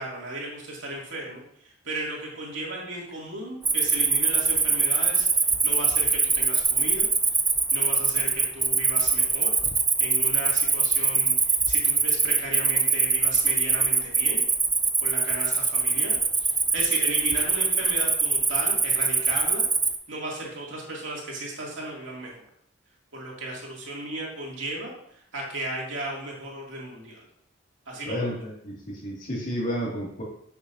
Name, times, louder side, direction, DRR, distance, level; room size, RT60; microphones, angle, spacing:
voice 1, 0.0-1.4 1.8-7.1 7.7-9.5 10.0-14.4 15.0-19.6 20.1-22.4 23.1-24.9 25.3-27.2 27.9-28.3, right 1 dB, 70° right, -3 dB, 2.6 m, -35 dB
Cricket, 3.6-20.0, right 4 dB, 10° right, 0.6 m, -23 dB
voice 2, 28.1-28.8 29.0-30.2, equal, 40° left, -3 dB, 2.3 m, -31 dB
10.5 x 6.9 x 2.7 m, 0.69 s
head